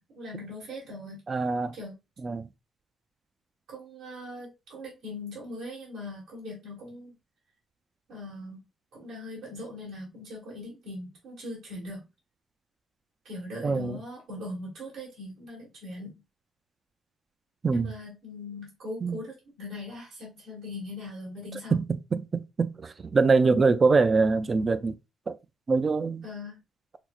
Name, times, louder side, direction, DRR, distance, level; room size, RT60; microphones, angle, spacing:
voice 1, 0.0-1.2 1.7-1.9 3.7-7.1 8.1-8.6 8.9-12.0 13.2-16.2 17.7-21.8 26.2-26.6, left 2 dB, 85° right, 2.0 m, -40 dB
voice 2, 1.3-1.8 2.2-2.5 13.6-14.0 17.6-17.9 19.0-19.2 21.7-25.0 25.3-25.4 25.7-26.3, right 4 dB, 35° right, 0.3 m, -24 dB
5.8 x 2.0 x 2.3 m
cardioid pair, 90°, 0 cm